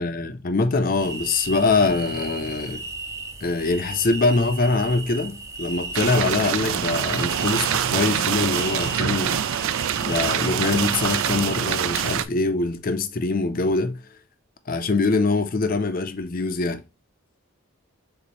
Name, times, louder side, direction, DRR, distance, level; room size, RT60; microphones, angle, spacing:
voice 1, 0.0-2.9 3.4-9.7 10.0-14.0 14.7-16.8, left 3 dB, 40° left, 0.5 m, -23 dB
sound 1, 1.0-12.2, right 3 dB, 15° right, 0.5 m, -36 dB
sound 2, 5.9-12.2, right 9 dB, 65° right, 0.3 m, -25 dB
6.7 x 2.6 x 3.0 m
head